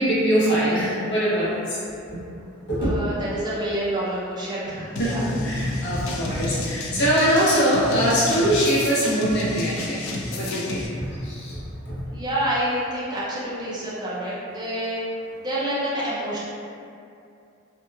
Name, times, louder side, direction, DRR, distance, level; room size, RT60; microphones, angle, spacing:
voice 1, 0.0-1.8 2.7-2.9 5.0-10.0 10.4-11.6 11.9-12.0, equal, 55° left, -8 dB, 0.7 m, -22 dB
voice 2, 2.8-5.3 12.1-16.5, right 1 dB, 20° right, -8 dB, 0.4 m, -28 dB
sound 1, 5.0-10.9, left 2 dB, 80° left, 0.3 m, -30 dB
2.8 x 2.1 x 2.2 m, 2.5 s
head